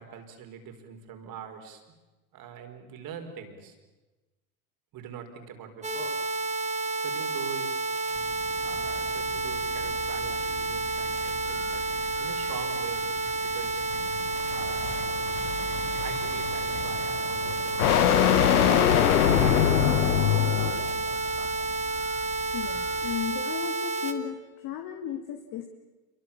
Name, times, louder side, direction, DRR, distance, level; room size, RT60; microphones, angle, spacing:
voice 1, 0.0-1.8 2.3-3.8 4.9-6.1 7.0-7.8 8.6-11.8 12.2-13.1 13.4-13.9 14.5-15.0 16.0-18.1 18.7-21.6, right 7 dB, 50° right, 5 dB, 4.8 m, -42 dB
sound 1, 5.8-24.1, right 3 dB, 15° right, 2.8 m, -30 dB
sound 2, 8.1-23.3, left 5 dB, 25° left, 3.0 m, -44 dB
sound 3, 13.9-21.0, left 11 dB, 85° left, 1.3 m, -24 dB
voice 2, 22.5-25.7, left 10 dB, 50° left, 5 dB, 2.2 m, -35 dB
27.5 x 24.0 x 7.3 m, 1.2 s
hypercardioid pair, 90°, 44 cm